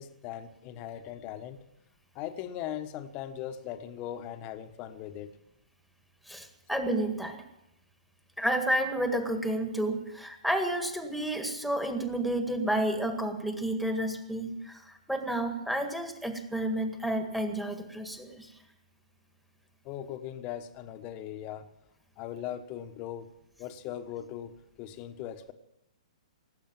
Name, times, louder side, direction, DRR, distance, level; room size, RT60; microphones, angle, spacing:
voice 1, 0.0-1.6 2.1-5.3 19.8-21.7 22.2-23.3 23.6-25.5, left 10 dB, 35° left, 1.3 m, -39 dB
voice 2, 6.3-7.4 8.4-18.5, right 1 dB, ahead, 1.9 m, -31 dB
18.0 x 8.3 x 8.9 m
hypercardioid pair, 130°, 4 cm